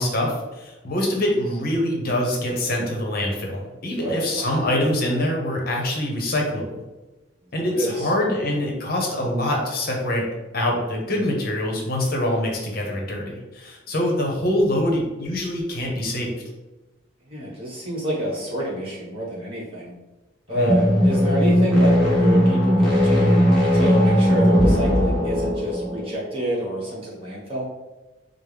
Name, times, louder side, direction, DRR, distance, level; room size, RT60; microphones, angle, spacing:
voice 1, 0.0-6.8 7.5-10.3 10.5-16.4 20.5-20.7, left 1 dB, 50° left, 0 dB, 0.8 m, -24 dB
voice 2, 4.0-4.6 7.6-8.1 17.3-19.9 20.5-23.4 23.7-27.7, right 1 dB, 30° right, -6 dB, 1.3 m, -27 dB
sound 1, 20.6-26.2, equal, ahead, 1.1 m, -18 dB
4.6 x 2.0 x 3.3 m, 1.1 s
head